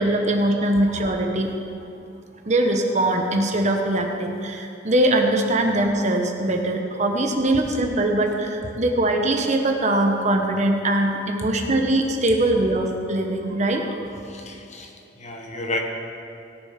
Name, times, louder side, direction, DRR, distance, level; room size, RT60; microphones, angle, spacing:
voice 1, 0.0-1.5 2.5-14.2, right 1 dB, 40° right, 3 dB, 1.0 m, -22 dB
voice 2, 14.2-15.8, left 2 dB, 35° left, 2 dB, 1.3 m, -32 dB
17.5 x 6.9 x 5.9 m, 2.7 s
head